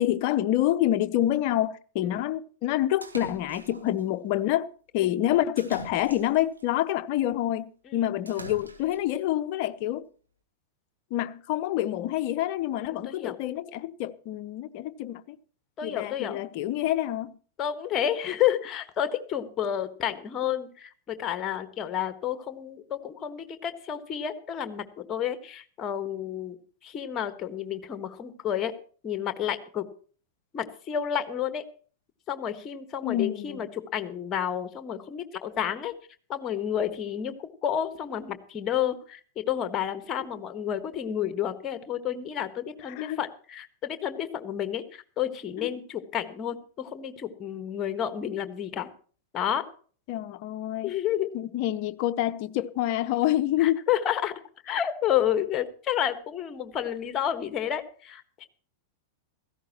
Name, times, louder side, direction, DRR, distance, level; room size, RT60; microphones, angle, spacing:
voice 1, 0.0-4.7 4.9-10.1 11.1-15.4 15.8-17.3 33.0-33.7 42.9-43.2 45.6-45.7 50.1-50.9 51.3-53.8, left 13 dB, 45° left, 0.8 m, -27 dB
Splash splatter, 3.0-4.0 5.6-6.6 8.3-9.1, right 2 dB, 85° right, 1.6 m, -43 dB
voice 2, 12.8-13.3 15.8-16.4 17.6-26.6 26.8-28.7 29.0-29.8 30.5-31.6 32.3-35.9 36.3-48.9 49.3-49.6 50.8-51.3 53.6-58.5, left 10 dB, 30° left, 1.5 m, -30 dB
16.5 x 15.0 x 3.0 m
figure-of-eight pair, 95°, 0 cm